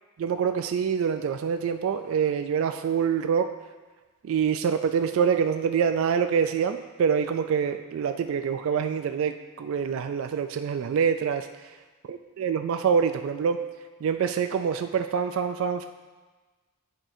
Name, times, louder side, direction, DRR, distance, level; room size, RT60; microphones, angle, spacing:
voice 1, 0.2-3.5 4.2-11.5 12.1-13.6 14.0-15.9, right 7 dB, 65° right, 8 dB, 0.3 m, -25 dB
8.6 x 5.9 x 2.7 m, 1.3 s
head